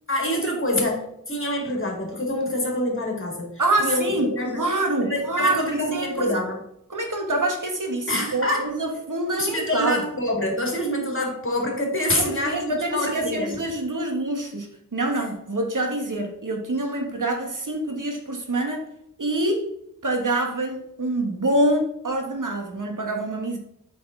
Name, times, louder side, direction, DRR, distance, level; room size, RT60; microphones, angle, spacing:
voice 1, 0.1-3.5 3.8-4.7 5.0-6.6 8.1-8.7 9.4-13.6, left 1 dB, 40° left, 0 dB, 2.6 m, -26 dB
voice 2, 3.6-6.4 6.9-10.0 12.1-18.9 19.2-19.7 20.0-23.6, right 1 dB, 70° right, 3 dB, 1.7 m, -26 dB
7.5 x 5.9 x 3.8 m, 0.76 s
wide cardioid pair, 45°, 33 cm